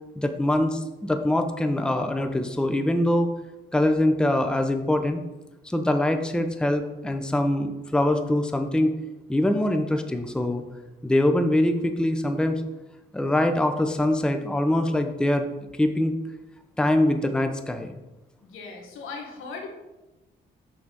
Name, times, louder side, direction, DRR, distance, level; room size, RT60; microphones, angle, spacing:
voice 1, 0.2-3.3 3.7-5.2 5.6-9.0 9.3-10.6 11.0-12.6 13.1-15.4 15.8-16.2 16.8-17.9, left 1 dB, 5° left, 7 dB, 0.7 m, -23 dB
voice 2, 18.4-19.7, left 4 dB, 85° left, 2 dB, 1.5 m, -38 dB
6.0 x 3.9 x 6.2 m, 1.0 s
cardioid pair, 75°, 21 cm